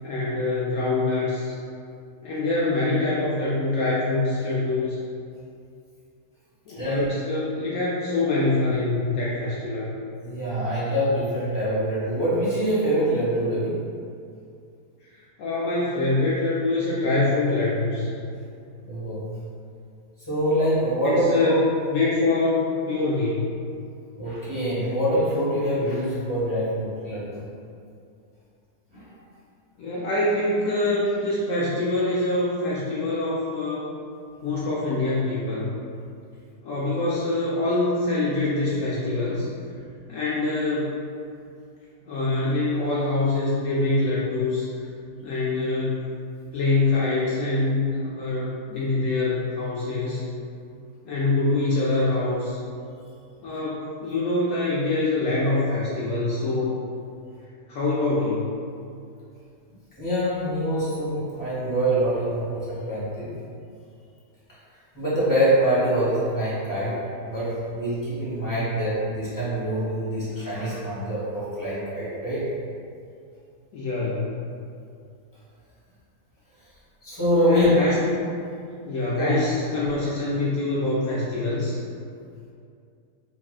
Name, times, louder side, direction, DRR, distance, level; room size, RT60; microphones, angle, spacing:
voice 1, 0.0-1.5 2.2-5.0 6.7-9.9 15.4-18.1 21.0-21.6 21.9-22.6 22.9-23.6 29.8-33.9 34.4-35.7 36.6-39.5 40.1-40.9 42.1-44.7 45.2-46.0 46.5-50.2 51.0-52.6 53.4-56.8 57.7-58.5 73.7-74.4 77.5-78.1 78.8-81.7, left 2 dB, 75° left, -7 dB, 0.7 m, -24 dB
voice 2, 6.7-7.1 10.2-13.8 18.8-19.2 20.3-21.6 24.1-27.4 28.9-29.2 60.0-63.3 64.9-67.0 67.3-72.5 77.0-77.7 79.1-79.3, equal, 15° left, -12 dB, 1.0 m, -25 dB
3.3 x 2.7 x 2.4 m, 2.4 s
omnidirectional pair, 1.8 m